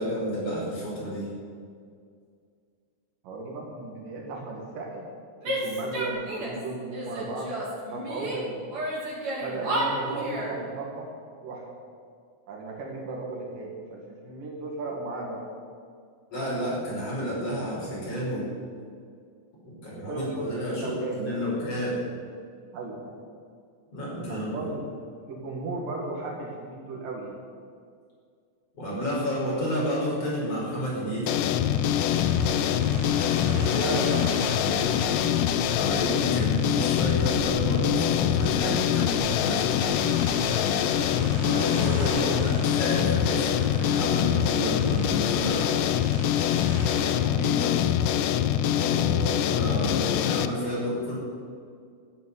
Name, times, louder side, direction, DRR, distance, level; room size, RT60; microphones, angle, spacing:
voice 1, 0.0-1.3 16.3-18.5 19.6-22.0 23.9-24.7 28.7-31.4 33.8-34.3 35.7-39.9 41.3-46.0 47.2-47.8 48.7-51.2, equal, 45° left, -6 dB, 6.4 m, -31 dB
voice 2, 3.2-5.1 5.4-7.5 7.9-8.7 9.4-11.1 11.4-11.7 12.5-15.4 19.9-21.5 22.7-23.2 24.3-27.4 32.9-34.9 41.9-42.5, right 2 dB, 85° right, -2 dB, 3.7 m, -35 dB
Female speech woman speaking / Yell, 5.4-6.6 6.9-8.4 8.7-10.6, right 1 dB, 55° right, 5.3 m, -31 dB
sound 1, 31.3-50.5, left 10 dB, 80° left, 2.3 m, -24 dB
sound 2, 31.6-47.1, right 2 dB, 35° right, 5.2 m, -37 dB
14.5 x 8.7 x 9.6 m, 2.2 s
omnidirectional pair, 3.7 m